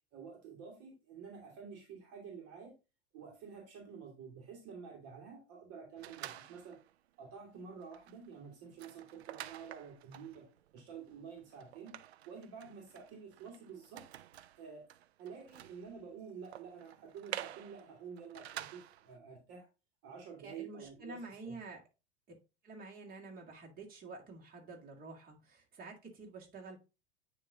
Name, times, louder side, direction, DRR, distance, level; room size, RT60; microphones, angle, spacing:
voice 1, 0.1-2.8 3.1-6.8 7.2-10.5 10.7-12.0 12.3-14.0 14.6-14.8 15.2-19.7 20.0-21.2 21.4-21.6, right 6 dB, 45° right, 1.9 m, -49 dB
sound 1, 6.0-6.9 7.4-7.5 7.8-19.2, right 13 dB, 70° right, 0.5 m, -50 dB
voice 2, 20.4-21.8 22.6-26.8, right 3 dB, 25° right, 2.2 m, -49 dB
9.5 x 3.2 x 3.8 m
figure-of-eight pair, 85°, 34 cm